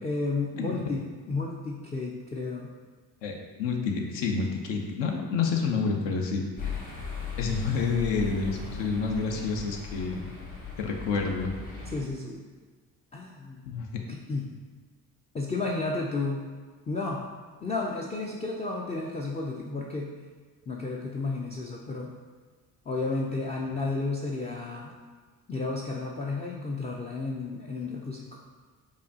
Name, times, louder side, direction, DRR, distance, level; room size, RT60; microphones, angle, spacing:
voice 1, 0.0-2.7 11.9-12.4 13.1-13.6 14.1-14.5 15.3-16.5 16.9-17.3 17.6-20.1 20.7-22.1 22.9-24.9 25.5-28.4, left 3 dB, 15° left, -2 dB, 0.3 m, -32 dB
voice 2, 3.2-6.8 7.4-10.2 10.8-11.5 13.6-14.0, left 4 dB, 65° left, 2 dB, 0.7 m, -29 dB
sound 1, 6.6-12.0, left 5 dB, 40° left, 1.3 m, -38 dB
4.9 x 2.3 x 2.7 m, 1.5 s
hypercardioid pair, 50°, 46 cm